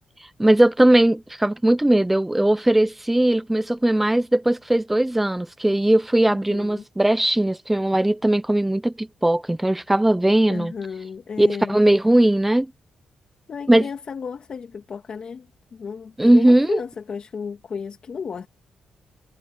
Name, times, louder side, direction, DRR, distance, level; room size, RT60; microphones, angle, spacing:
voice 1, 0.4-10.7 11.4-12.7 13.7-13.8 16.2-16.8, right 1 dB, 10° right, 0.8 m, -19 dB
voice 2, 6.2-6.8 10.5-11.8 13.5-18.5, left 6 dB, 50° left, 2.7 m, -33 dB
cardioid pair, 100°, 2 cm